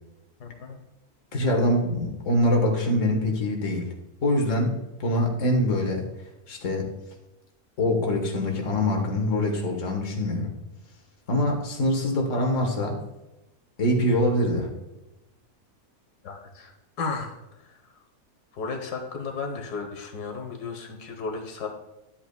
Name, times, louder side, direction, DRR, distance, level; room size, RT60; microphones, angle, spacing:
voice 1, 0.4-0.8 16.2-16.7 17.0-17.9 18.5-21.7, left 4 dB, 90° left, 3 dB, 1.6 m, -34 dB
voice 2, 1.3-3.9 4.2-6.1 6.5-6.9 7.8-10.5 11.3-13.0 13.8-14.7, left 1 dB, 55° left, 2 dB, 1.6 m, -24 dB
12.0 x 8.1 x 2.2 m, 0.98 s
omnidirectional pair, 1.6 m